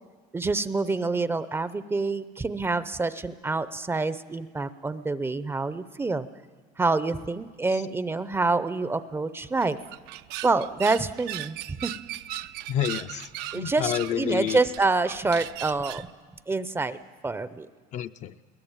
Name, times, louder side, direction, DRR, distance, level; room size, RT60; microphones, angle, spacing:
voice 1, 0.3-6.3 6.8-9.8 10.4-11.9 13.5-16.1 16.5-17.0 17.2-17.7, right 3 dB, 10° right, 14 dB, 0.6 m, -27 dB
sound 1, 9.4-16.1, right 14 dB, 60° right, 0.6 m, -38 dB
voice 2, 12.7-14.6 17.9-18.3, left 10 dB, 40° left, 10 dB, 0.6 m, -29 dB
22.0 x 19.0 x 8.9 m, 1.4 s
cardioid pair, 140°, 18 cm